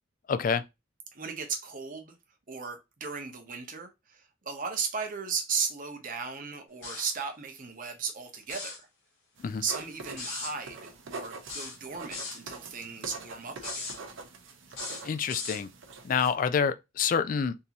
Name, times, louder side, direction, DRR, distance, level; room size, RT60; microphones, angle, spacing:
voice 1, 0.3-0.6 9.4-9.6 15.0-15.7 16.0-17.6, left 6 dB, 45° left, 0.3 m, -27 dB
voice 2, 1.1-2.1 2.5-8.9 9.6-13.9, right 5 dB, 45° right, 0.8 m, -36 dB
sound 1, 6.8-7.2 8.4-8.8 10.2-10.5 11.5-12.4 13.6-14.0 14.7-15.6, left 3 dB, 75° left, 1.5 m, -38 dB
sound 2, 9.4-16.3, right 3 dB, 80° right, 0.7 m, -44 dB
3.7 x 2.7 x 2.9 m
head